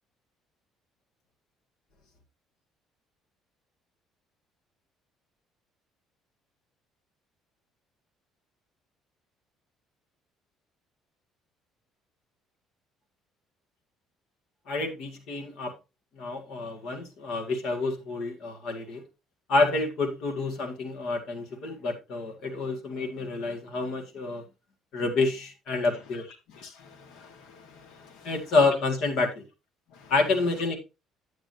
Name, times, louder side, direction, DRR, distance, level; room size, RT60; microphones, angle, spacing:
voice 1, 14.7-15.7 16.2-19.0 19.5-24.4 24.9-26.2 28.2-29.4 30.1-30.8, left 3 dB, 55° left, 2.0 m, -28 dB
voice 2, 26.5-28.3 29.9-30.1, left 5 dB, 75° left, 1.6 m, -51 dB
9.3 x 8.7 x 2.8 m
cardioid pair, 175°, 0 cm